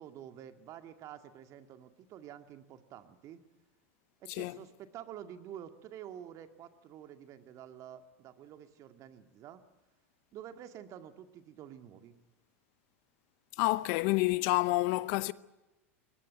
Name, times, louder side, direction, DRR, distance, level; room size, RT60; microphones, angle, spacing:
voice 1, 0.0-3.4 4.2-9.6 10.3-12.2, right 10 dB, 45° right, 2.1 m, -49 dB
voice 2, 13.6-15.3, left 22 dB, 55° left, 0.7 m, -28 dB
22.5 x 19.0 x 9.2 m
hypercardioid pair, 100°, 8 cm